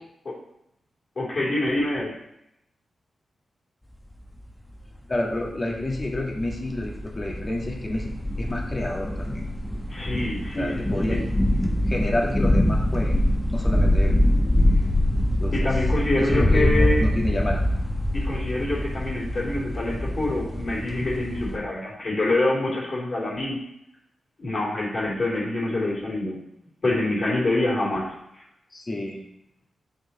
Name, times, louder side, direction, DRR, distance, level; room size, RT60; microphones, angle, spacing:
voice 1, 1.2-2.1 9.9-11.2 15.5-17.1 18.1-23.6 24.4-26.4 26.8-28.4, left 2 dB, 45° left, -5 dB, 2.9 m, -26 dB
sound 1, 4.7-4.8 5.1-5.5 5.8-21.6, left 1 dB, 10° left, 1.1 m, -24 dB
voice 2, 5.1-8.1 8.4-9.5 10.6-11.2 11.9-13.2 13.5-14.2 15.3-15.7 16.2-17.7 28.7-29.2, left 1 dB, 30° left, -1 dB, 1.9 m, -29 dB
6.9 x 6.4 x 4.2 m, 0.80 s
cardioid pair, 85°, 0 cm